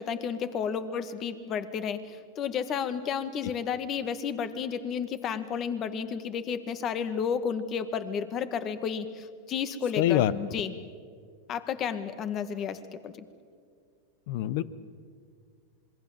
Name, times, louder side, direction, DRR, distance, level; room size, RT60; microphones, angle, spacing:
voice 1, 0.0-10.7 11.5-13.2, left 7 dB, 40° left, 11 dB, 1.8 m, -32 dB
voice 2, 10.0-10.3 14.3-14.6, left 13 dB, 65° left, 17 dB, 1.0 m, -24 dB
26.5 x 21.5 x 7.5 m, 2.1 s
hypercardioid pair, 100°, 0 cm